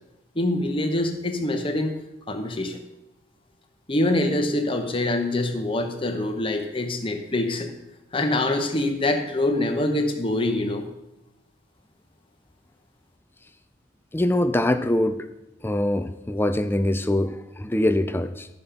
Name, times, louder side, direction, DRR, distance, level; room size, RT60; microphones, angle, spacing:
voice 1, 0.4-2.0 2.3-2.8 3.9-7.7 8.1-10.9, left 1 dB, 25° left, 5 dB, 1.0 m, -25 dB
voice 2, 14.1-15.3 15.6-18.5, left 1 dB, 10° left, 10 dB, 0.4 m, -23 dB
13.0 x 5.2 x 5.7 m, 0.91 s
head